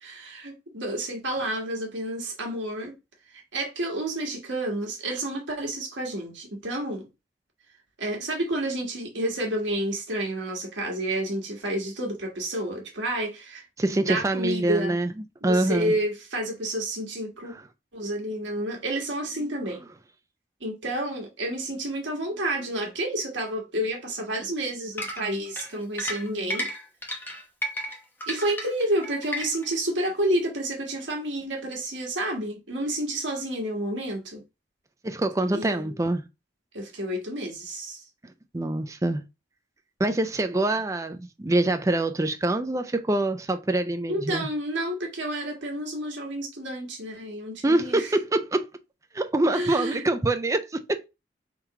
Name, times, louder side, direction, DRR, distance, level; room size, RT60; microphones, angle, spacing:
voice 1, 0.0-2.9 3.5-7.0 8.0-14.9 15.4-17.5 17.9-19.8 20.6-26.7 28.3-34.4 35.5-35.9 36.7-38.0 44.1-48.1 49.5-50.0, right 1 dB, 85° right, 1.4 m, -30 dB
voice 2, 13.8-15.1 15.4-16.0 35.0-36.2 38.5-39.2 40.0-44.5 47.6-48.7 49.1-51.0, right 2 dB, 15° right, 0.4 m, -25 dB
sound 1, 25.0-29.8, equal, 10° left, 0.9 m, -33 dB
3.7 x 2.9 x 4.6 m
head